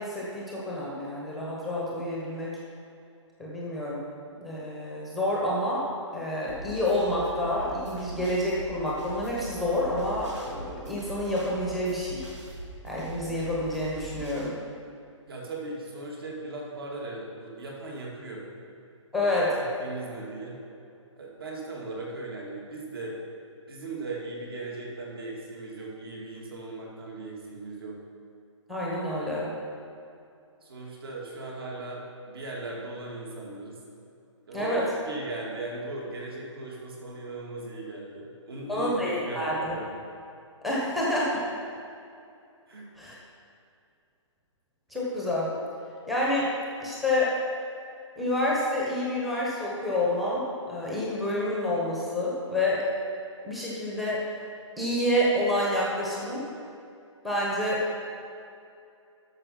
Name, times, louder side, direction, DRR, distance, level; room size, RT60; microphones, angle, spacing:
voice 1, 0.0-2.5 3.4-4.0 4.4-5.9 6.1-12.3 12.8-14.6 19.1-19.6 28.7-29.5 34.5-34.8 38.7-39.7 40.6-41.5 43.0-43.1 44.9-45.5 46.1-46.5 46.8-47.4 48.2-52.9 53.4-54.2 54.8-56.4 57.2-57.8, left 1 dB, ahead, -6 dB, 1.1 m, -28 dB
sound 1, 6.5-14.5, right 1 dB, 65° right, 2.2 m, -42 dB
voice 2, 15.3-18.5 19.1-19.3 19.6-20.6 21.2-23.2 23.7-28.0 30.6-33.8 34.4-34.8 35.1-40.0 42.7-42.9, right 2 dB, 50° right, -2 dB, 2.4 m, -38 dB
12.0 x 6.6 x 5.7 m, 2.5 s
hypercardioid pair, 170°, 16 cm